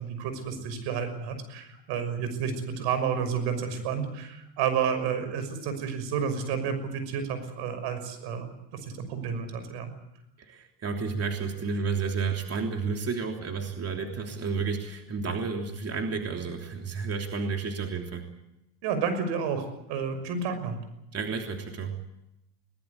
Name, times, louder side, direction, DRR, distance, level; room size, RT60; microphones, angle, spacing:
voice 1, 0.0-9.9 18.8-20.8, right 6 dB, 75° right, 10 dB, 6.1 m, -31 dB
voice 2, 10.4-18.3 21.1-22.0, right 5 dB, 35° right, 3 dB, 3.3 m, -31 dB
21.5 x 19.5 x 8.4 m, 0.88 s
supercardioid pair, 100°, 42 cm